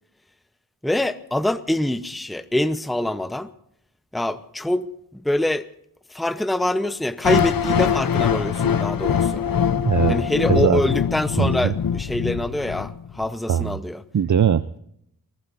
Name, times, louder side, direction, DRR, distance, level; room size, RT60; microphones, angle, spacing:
voice 1, 0.8-3.5 4.1-5.7 6.1-9.5 10.1-14.0, left 1 dB, ahead, 0.8 m, -25 dB
sound 1, 7.2-13.3, left 8 dB, 65° left, 0.7 m, -23 dB
voice 2, 9.9-10.2 10.5-10.8 11.4-11.7 13.5-13.8 14.1-14.8, right 8 dB, 50° right, 0.6 m, -20 dB
23.5 x 19.5 x 2.6 m
cardioid pair, 40°, 38 cm